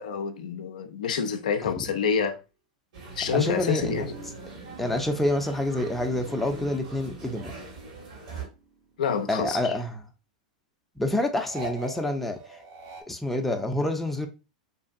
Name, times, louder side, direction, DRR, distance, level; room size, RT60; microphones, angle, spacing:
voice 1, 0.0-2.4 3.2-4.1 9.0-9.7, left 6 dB, 75° left, 0.3 m, -27 dB
sound 1, 2.9-8.4, right 4 dB, 65° right, 1.4 m, -41 dB
voice 2, 3.3-4.1 4.8-7.5 9.3-10.0 11.0-12.6 13.1-14.3, left 1 dB, 5° left, 0.4 m, -27 dB
sound 2, 4.1-8.0 8.3-9.9 11.4-13.0, right 2 dB, 45° right, 0.7 m, -45 dB
2.6 x 2.4 x 2.4 m
hypercardioid pair, 100°, 4 cm